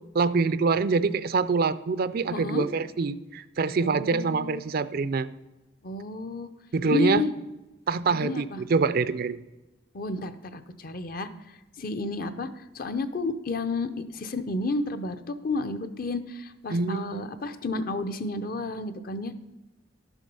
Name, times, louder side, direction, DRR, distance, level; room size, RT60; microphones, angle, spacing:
voice 1, 0.1-5.3 6.7-7.2 7.9-9.4 16.7-17.3, right 4 dB, 50° right, 15 dB, 0.4 m, -25 dB
voice 2, 2.3-2.7 3.8-4.6 5.8-6.5 6.8-7.3 8.1-8.6 9.9-11.3 11.8-19.4, left 3 dB, 45° left, 10 dB, 0.7 m, -31 dB
12.0 x 7.2 x 5.4 m, 1.0 s
head